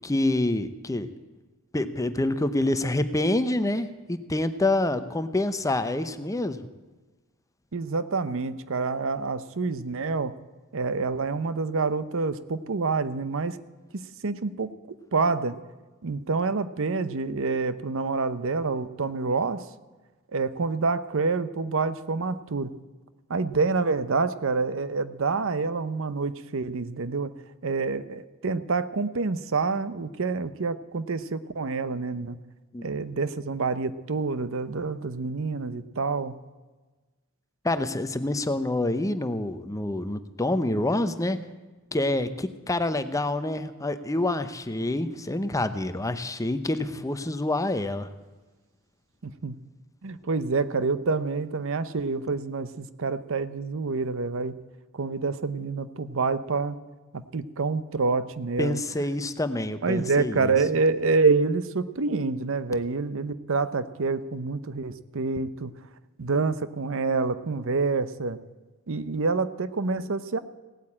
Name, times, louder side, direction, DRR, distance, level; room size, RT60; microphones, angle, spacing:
voice 1, 0.0-1.1 1.7-6.6 32.7-32.8 37.6-41.4 41.9-48.1 58.6-60.5, left 2 dB, 15° left, 11 dB, 0.7 m, -27 dB
voice 2, 7.7-10.3 10.7-13.6 13.9-15.6 16.0-19.7 20.3-22.7 23.3-27.3 27.6-32.4 32.8-36.4 49.2-49.6 50.0-54.6 54.9-56.8 57.1-58.8 59.8-65.7 66.2-68.4 68.9-70.4, right 4 dB, 65° right, 14 dB, 0.7 m, -27 dB
17.0 x 8.9 x 8.6 m, 1.2 s
head